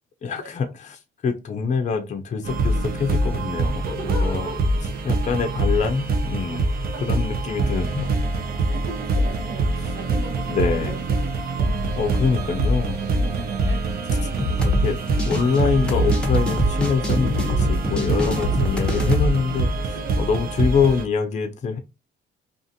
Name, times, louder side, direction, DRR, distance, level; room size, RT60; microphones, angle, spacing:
voice 1, 0.2-4.5 5.0-6.7 7.0-8.1 10.5-11.0 12.0-13.0 14.6-15.0 15.2-21.8, left 5 dB, 35° left, 6 dB, 0.5 m, -25 dB
sound 1, 2.4-21.0, right 2 dB, 50° right, 0.6 m, -24 dB
voice 2, 3.8-4.7 6.4-6.5 8.4-12.2 12.7-13.1 13.6-13.8 14.8-15.0 15.4-15.5 18.2-18.7 19.9-20.2, right 2 dB, 85° right, 2 dB, 1.0 m, -38 dB
sound 2, 14.4-19.3, equal, 5° left, 0.7 m, -24 dB
2.5 x 2.5 x 2.7 m, 0.27 s
cardioid pair, 90°, 20 cm